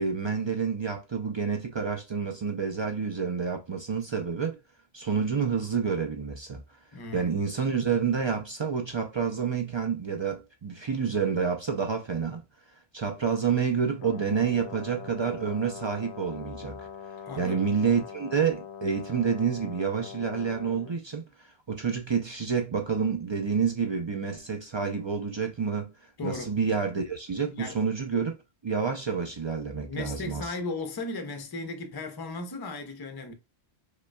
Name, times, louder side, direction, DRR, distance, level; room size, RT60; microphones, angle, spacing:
voice 1, 0.0-4.6 4.9-6.6 7.1-12.4 12.9-16.9 17.4-25.9 26.2-28.3 28.6-30.5, right 6 dB, 50° right, 0.3 m, -28 dB
voice 2, 6.9-7.4 17.2-17.7 26.2-26.6 27.5-27.8 29.8-33.3, left 3 dB, 30° left, 0.5 m, -36 dB
Brass instrument, 14.0-21.0, left 7 dB, 85° left, 0.9 m, -42 dB
5.0 x 2.2 x 2.2 m
omnidirectional pair, 1.1 m